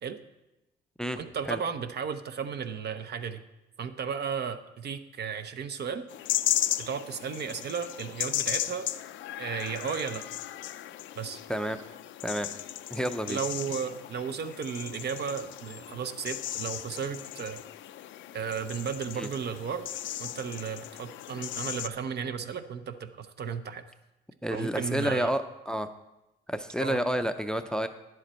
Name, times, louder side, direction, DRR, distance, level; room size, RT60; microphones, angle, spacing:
voice 1, 1.1-3.4 3.8-6.1 6.8-8.9 9.4-10.3 11.2-11.4 13.3-17.6 18.3-19.9 20.2-23.8 24.5-25.3 26.8-27.0, right 6 dB, 55° right, 9 dB, 0.7 m, -34 dB
sound 1, 6.1-21.9, left 13 dB, 70° left, 0.4 m, -36 dB
voice 2, 12.9-13.4 19.2-19.3 24.4-25.9 26.5-27.9, equal, 5° left, 9 dB, 0.5 m, -29 dB
10.0 x 7.9 x 4.3 m, 0.96 s
cardioid pair, 90°, 20 cm